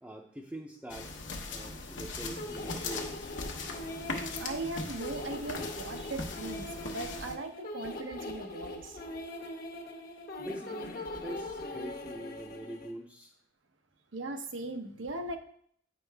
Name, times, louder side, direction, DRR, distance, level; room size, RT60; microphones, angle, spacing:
voice 1, 0.0-3.4 10.4-13.3, right 1 dB, 5° right, -1 dB, 0.6 m, -44 dB
sound 1, 0.9-7.3, left 3 dB, 75° left, 1.0 m, -40 dB
sound 2, 2.4-12.9, left 1 dB, 50° left, 1.0 m, -41 dB
voice 2, 4.4-9.0 14.1-15.4, right 2 dB, 85° right, 6 dB, 0.8 m, -39 dB
9.0 x 5.3 x 3.4 m, 0.64 s
head